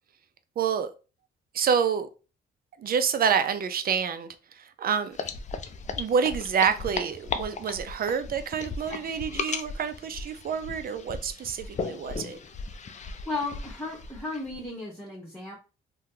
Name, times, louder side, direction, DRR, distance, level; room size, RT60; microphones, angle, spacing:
voice 1, 0.6-0.9 1.5-2.1 2.8-5.2 6.0-12.4, right 7 dB, 45° right, 0.5 m, -28 dB
sound 1, 5.1-14.7, left 4 dB, 35° left, 0.5 m, -36 dB
voice 2, 13.2-15.6, left 3 dB, 5° left, 1.1 m, -34 dB
2.7 x 2.2 x 3.7 m
cardioid pair, 80°, 21 cm